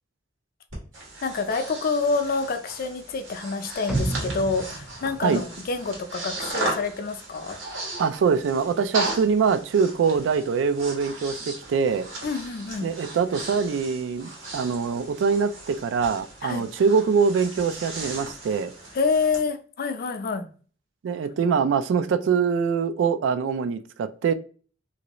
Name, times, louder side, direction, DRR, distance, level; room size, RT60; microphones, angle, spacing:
Breathing, 0.7-19.4, right 2 dB, 90° right, 1.3 m, -37 dB
voice 1, 1.2-7.6 12.2-12.9 16.4-16.6 18.9-20.5, left 4 dB, 50° left, 0.4 m, -27 dB
sound 1, 3.9-6.0 6.4-6.5, right 2 dB, 5° right, 0.5 m, -31 dB
voice 2, 5.1-5.4 8.0-12.1 12.8-18.7 21.0-24.3, right 5 dB, 70° right, 0.3 m, -24 dB
3.0 x 2.6 x 2.9 m
head